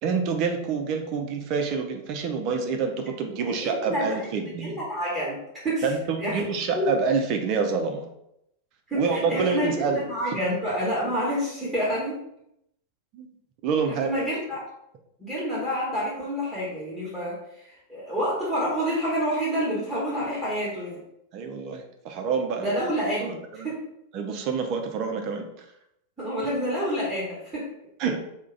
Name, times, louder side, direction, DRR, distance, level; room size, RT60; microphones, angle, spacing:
voice 1, 0.0-4.8 5.8-8.1 8.9-10.0 10.3-10.4 13.1-13.3 13.6-14.1 21.3-22.8 23.2-23.7 24.1-25.6 28.0-28.2, right 5 dB, 40° right, 4 dB, 0.4 m, -27 dB
voice 2, 3.4-5.9 6.2-6.4 6.7-6.9 8.9-12.2 13.9-14.6 15.2-21.0 22.6-23.8 26.2-27.7, equal, 10° right, -8 dB, 1.0 m, -28 dB
2.3 x 2.1 x 3.8 m, 0.79 s
figure-of-eight pair, 90°, 0 cm